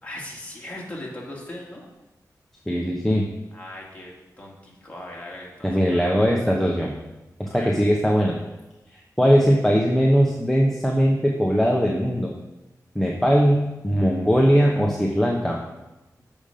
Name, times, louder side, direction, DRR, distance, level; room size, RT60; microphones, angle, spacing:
voice 1, 0.0-1.9 3.5-6.3 7.4-7.7, left 1 dB, 20° left, -4 dB, 2.5 m, -39 dB
voice 2, 2.7-3.2 5.6-6.9 7.4-8.4 9.2-12.3 12.9-15.6, equal, 5° left, -1 dB, 1.0 m, -20 dB
7.2 x 5.2 x 6.7 m, 1.0 s
wide cardioid pair, 75°, 7 cm